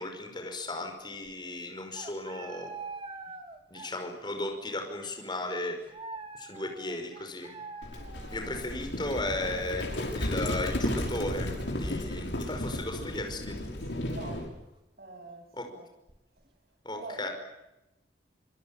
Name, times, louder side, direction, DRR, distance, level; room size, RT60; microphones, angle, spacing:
voice 1, 0.0-2.7 3.7-5.8 6.3-7.5 8.3-13.6 15.5-15.7 16.8-17.3, left 2 dB, 25° left, 5.4 m, -35 dB
sound 1, 0.8-0.9 1.1-1.3 1.8-4.3 4.6-4.7 5.8-12.1 12.4-12.5 13.3-13.4 13.9-14.0 14.2-14.3 16.1-16.4, right 4 dB, 30° right, 2.8 m, -46 dB
Livestock farm animals working animals, 7.8-14.5, left 1 dB, 90° left, 6.1 m, -34 dB
voice 2, 13.8-14.6 15.0-15.8 16.9-17.3, right 3 dB, 55° right, 8.0 m, -45 dB
26.0 x 24.0 x 8.9 m
head